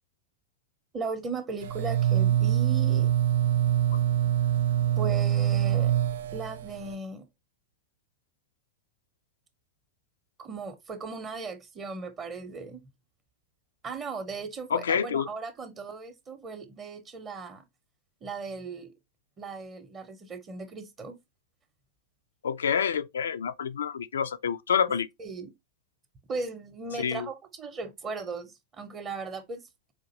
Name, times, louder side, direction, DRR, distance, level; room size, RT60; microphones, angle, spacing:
voice 1, 0.9-3.1 5.0-6.0 6.3-7.3 10.4-12.9 13.8-17.7 18.2-18.9 19.4-21.2 25.2-25.5 26.3-29.6, right 4 dB, 25° right, 0.7 m, -37 dB
sound 1, 1.6-6.9, right 11 dB, 60° right, 0.3 m, -25 dB
voice 2, 14.7-15.3 22.4-25.1 27.0-27.3, left 7 dB, 65° left, 0.4 m, -28 dB
4.9 x 2.5 x 2.9 m
figure-of-eight pair, 90°, 0 cm